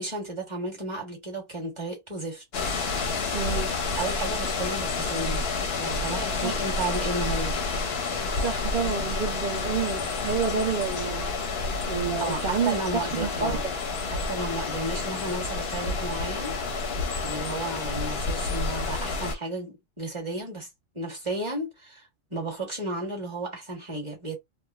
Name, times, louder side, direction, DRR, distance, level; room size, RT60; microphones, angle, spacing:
voice 1, 0.0-2.4 3.9-5.5 5.8-7.6 12.2-13.6 14.1-16.6 17.2-20.7 20.9-24.3, right 2 dB, 20° right, 1.3 m, -33 dB
sound 1, 2.5-19.3, left 3 dB, 55° left, 0.8 m, -29 dB
voice 2, 3.3-3.7 6.4-6.5 8.4-11.3 11.9-12.8 13.1-13.6, right 5 dB, 60° right, 0.5 m, -29 dB
3.2 x 2.2 x 2.4 m
omnidirectional pair, 1.6 m